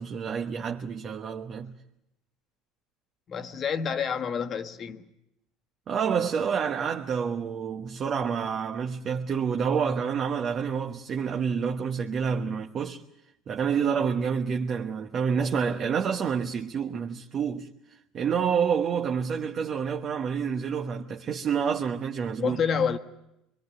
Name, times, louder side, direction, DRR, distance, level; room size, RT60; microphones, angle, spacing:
voice 1, 0.0-1.7 5.9-13.0 13.5-17.7 18.1-22.6, right 6 dB, 45° right, 1.1 m, -28 dB
voice 2, 3.3-5.0 22.4-23.0, left 7 dB, 45° left, 1.5 m, -28 dB
24.5 x 22.0 x 8.1 m
hypercardioid pair, 75°, 0 cm